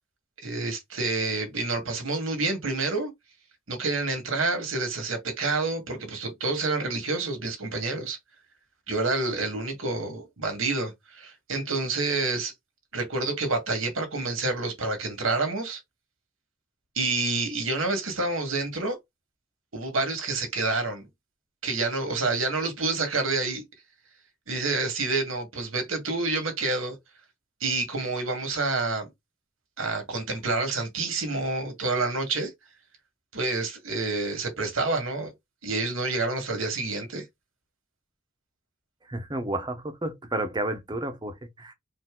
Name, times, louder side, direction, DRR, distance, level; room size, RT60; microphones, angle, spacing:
voice 1, 0.4-3.1 3.7-8.2 8.9-12.5 12.9-15.8 17.0-19.0 19.7-21.1 21.6-23.6 24.5-27.0 27.6-29.1 29.8-32.5 33.3-35.3 35.6-37.2, right 3 dB, 85° right, 1.9 m, -28 dB
voice 2, 39.1-41.7, right 1 dB, 20° right, 0.8 m, -31 dB
4.5 x 2.7 x 3.7 m
head